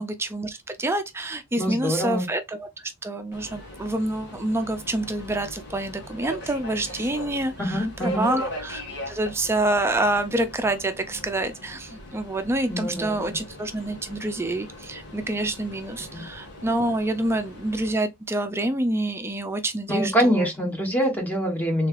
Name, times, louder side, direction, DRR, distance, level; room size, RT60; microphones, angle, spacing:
voice 1, 0.0-20.5, right 1 dB, 10° right, 0.3 m, -27 dB
voice 2, 1.6-2.3 7.6-8.3 12.7-13.3 16.1-16.2 19.9-21.9, equal, 5° left, 1.1 m, -25 dB
Subway metro underground, 3.3-17.9, equal, 50° left, 1.6 m, -40 dB
3.5 x 3.2 x 2.4 m
head